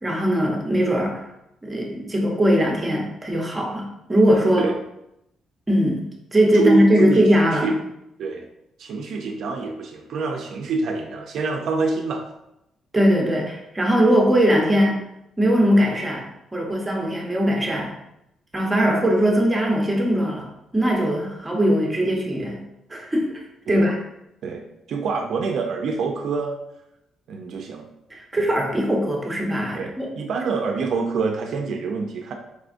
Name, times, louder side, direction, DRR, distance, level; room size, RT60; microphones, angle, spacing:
voice 1, 0.0-1.3 1.6-4.7 5.7-7.7 12.9-15.0 15.4-17.9 18.5-22.6 22.9-23.4 23.7-24.0 28.1-30.1, equal, 15° right, -1 dB, 0.8 m, -20 dB
voice 2, 6.5-7.2 7.5-7.7 8.2-8.5 8.8-12.2 23.7-23.9 24.4-26.6 27.3-27.9 28.4-28.5 29.7-32.3, right 4 dB, 70° right, 3 dB, 0.4 m, -26 dB
4.2 x 2.3 x 2.5 m, 0.83 s
cardioid pair, 90°, 0 cm